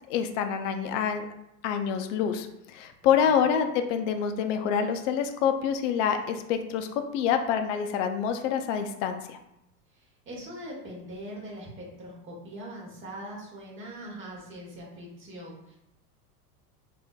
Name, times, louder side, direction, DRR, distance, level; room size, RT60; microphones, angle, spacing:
voice 1, 0.1-1.2 1.6-6.9 7.1-9.4, left 7 dB, 50° left, 7 dB, 0.5 m, -27 dB
voice 2, 3.0-3.5 9.9-15.8, equal, 25° right, -3 dB, 1.1 m, -42 dB
3.5 x 2.6 x 2.2 m, 0.83 s
hypercardioid pair, 100°, 47 cm